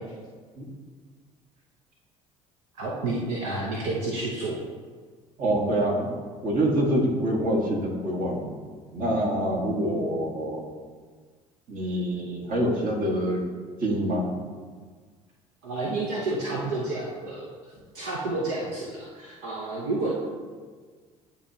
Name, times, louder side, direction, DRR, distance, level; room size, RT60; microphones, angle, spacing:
voice 1, 2.7-4.6 15.6-17.5 17.9-20.1, right 2 dB, 80° right, -3 dB, 0.8 m, -30 dB
voice 2, 5.4-6.1 6.4-8.5 8.9-10.6 11.7-13.4 13.8-14.3, right 1 dB, 50° right, -2 dB, 1.6 m, -25 dB
9.6 x 3.5 x 2.8 m, 1.5 s
hypercardioid pair, 65°, 18 cm